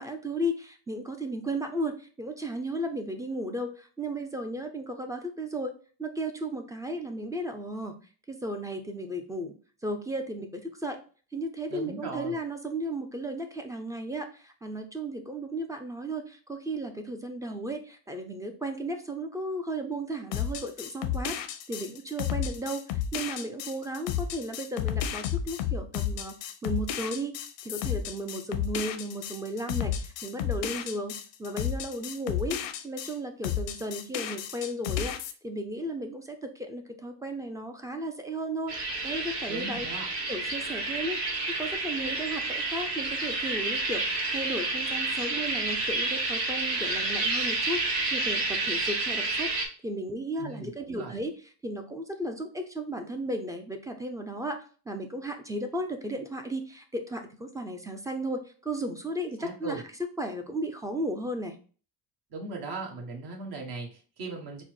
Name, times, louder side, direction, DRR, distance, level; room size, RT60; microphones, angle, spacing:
voice 1, 0.0-5.7 6.0-8.0 8.3-9.5 9.8-11.0 11.3-27.4 27.6-32.6 32.8-35.2 35.4-39.9 40.3-49.5 49.8-51.3 51.6-59.8 60.2-61.6, right 1 dB, 10° right, 5 dB, 0.4 m, -35 dB
voice 2, 11.7-12.4 39.5-40.1 50.4-51.2 59.4-59.8 62.3-64.6, right 3 dB, 60° right, 0 dB, 1.5 m, -38 dB
sound 1, 20.3-33.1 33.4-35.3, left 9 dB, 90° left, 0.7 m, -32 dB
sound 2, 38.7-49.7, right 2 dB, 85° right, 1.2 m, -30 dB
4.1 x 2.1 x 4.6 m, 0.39 s
cardioid pair, 130°, 43 cm